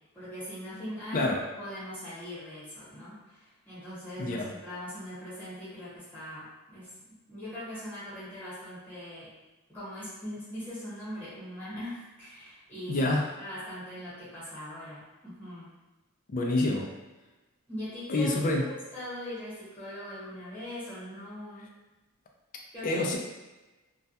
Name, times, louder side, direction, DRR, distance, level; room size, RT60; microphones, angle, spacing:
voice 1, 0.1-9.3 9.7-13.1 13.4-15.7 17.7-21.7 22.7-23.1, equal, 10° left, -11 dB, 1.0 m, -41 dB
voice 2, 1.1-1.4 4.2-4.5 12.9-13.3 16.3-16.9 18.1-18.6 22.8-23.2, left 2 dB, 40° left, 1 dB, 0.3 m, -27 dB
2.2 x 2.1 x 2.7 m, 1.1 s
head